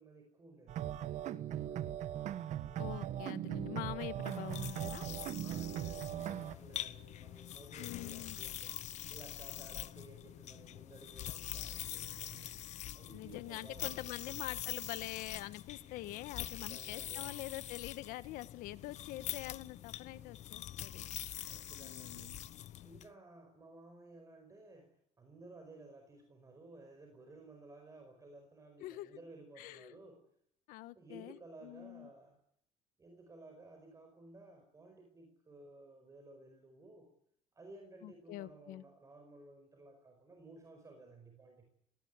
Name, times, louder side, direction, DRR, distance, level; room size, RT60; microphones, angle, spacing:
voice 1, 0.0-1.9 4.2-4.5 5.4-12.6 12.9-14.4 16.4-17.6 21.4-22.5 22.8-30.2 30.9-32.4 33.0-37.1 37.5-41.7, right 2 dB, 20° right, 4 dB, 5.1 m, -56 dB
sound 1, 0.7-6.5, right 11 dB, 55° right, 1.2 m, -39 dB
voice 2, 2.8-5.1 7.8-8.4 13.1-22.4 28.8-29.1 29.6-30.0 30.7-32.1 38.0-38.8, left 16 dB, 80° left, 14 dB, 1.3 m, -45 dB
sound 2, 4.2-23.1, left 13 dB, 55° left, 0.9 m, -45 dB
21.0 x 18.5 x 9.6 m, 0.68 s
cardioid pair, 125°, 14 cm